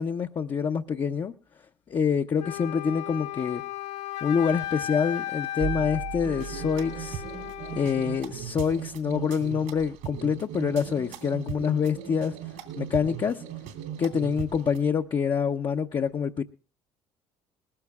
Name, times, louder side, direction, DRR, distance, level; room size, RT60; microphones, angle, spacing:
voice 1, 0.0-1.3 1.9-3.6 4.2-7.2 7.7-12.4 12.8-13.4 14.0-16.4, left 6 dB, 35° left, 0.8 m, -26 dB
Wind instrument woodwind instrument, 2.4-8.3, left 12 dB, 85° left, 3.5 m, -35 dB
sound 1, 5.6-9.5, right 10 dB, 50° right, 1.2 m, -39 dB
sound 2, 6.2-14.8, right 9 dB, 70° right, 2.8 m, -38 dB
20.5 x 14.5 x 2.4 m
hypercardioid pair, 60°, 14 cm